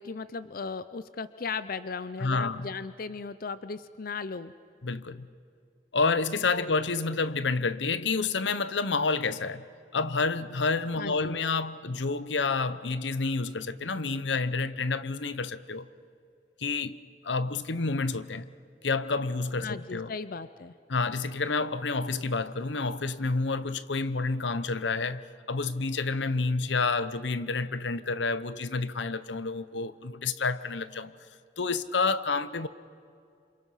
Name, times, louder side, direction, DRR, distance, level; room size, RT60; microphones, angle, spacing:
voice 1, 0.0-4.5 6.5-6.7 11.0-11.4 19.6-20.7, left 5 dB, 55° left, 0.6 m, -37 dB
voice 2, 2.2-2.7 4.8-5.3 5.9-9.6 9.9-15.9 16.6-17.0 17.2-18.5 18.8-20.1 20.9-25.2 25.5-31.1 31.6-32.7, left 4 dB, 90° left, 0.9 m, -29 dB
28.5 x 27.0 x 5.7 m
head